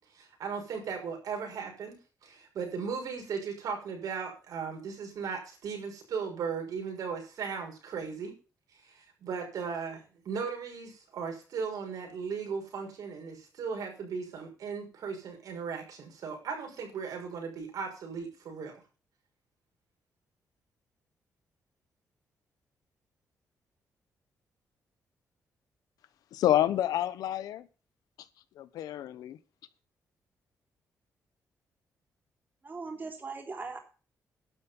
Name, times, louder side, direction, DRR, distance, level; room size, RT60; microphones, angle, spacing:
voice 1, 0.1-8.3 8.8-18.7, right 6 dB, 75° right, 6.0 m, -37 dB
voice 2, 26.3-27.7 28.6-29.3, left 12 dB, 90° left, 1.0 m, -28 dB
voice 3, 32.6-33.8, right 4 dB, 30° right, 3.6 m, -39 dB
12.0 x 6.9 x 7.2 m
cardioid pair, 100°, 6 cm